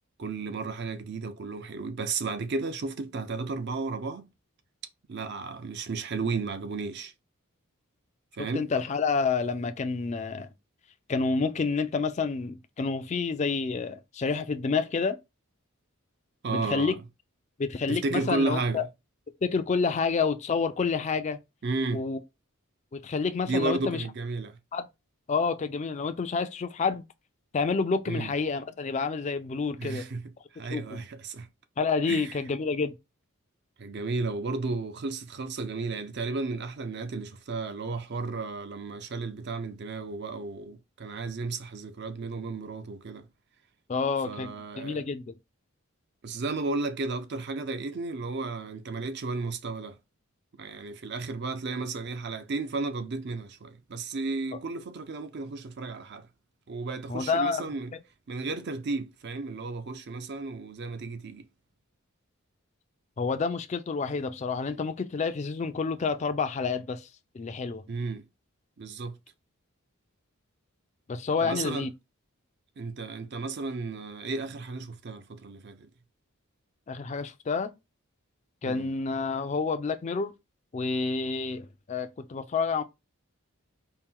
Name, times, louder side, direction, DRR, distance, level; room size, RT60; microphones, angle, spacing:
voice 1, 0.2-4.3 5.1-7.1 8.4-8.7 16.4-17.0 17.9-18.9 21.6-22.0 23.5-24.6 28.1-28.3 29.8-31.5 32.1-32.4 33.8-43.3 44.3-45.0 46.2-50.0 50.6-56.3 56.7-57.9 58.3-61.4 67.9-68.3 68.8-69.2 71.4-71.9 72.8-75.9 78.6-78.9, right 3 dB, 50° right, 0.5 m, -33 dB
voice 2, 8.4-10.5 11.1-15.2 16.5-16.9 17.6-18.8 19.4-21.4 21.9-22.2 22.9-24.0 24.7-24.9 25.3-27.0 27.5-30.1 30.7-30.8 31.8-32.9 43.9-44.5 44.8-45.3 57.1-57.6 63.2-67.1 67.3-67.8 71.1-71.9 76.9-77.7 78.6-80.3 80.7-82.8, left 4 dB, 30° left, 0.3 m, -29 dB
4.3 x 2.1 x 3.6 m
head